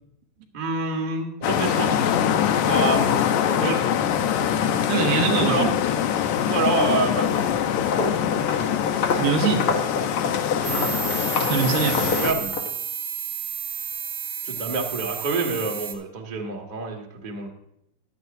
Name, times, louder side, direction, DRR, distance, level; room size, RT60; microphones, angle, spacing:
voice 1, 0.5-2.0 2.7-3.8 5.3-5.7 6.5-7.4 10.6-11.0 11.6-12.6 14.4-17.5, right 3 dB, 25° right, 0 dB, 0.9 m, -27 dB
sound 1, 1.4-12.3, left 9 dB, 80° left, 2.2 m, -23 dB
voice 2, 4.9-5.7 9.1-9.7 11.4-12.1, right 7 dB, 85° right, 3 dB, 2.9 m, -23 dB
Walk footsteps, 6.0-6.3 6.6-12.7, left 5 dB, 55° left, 1.7 m, -28 dB
sound 2, 10.6-15.9, right 9 dB, 65° right, 2.3 m, -31 dB
16.0 x 11.0 x 2.7 m, 0.79 s
omnidirectional pair, 3.7 m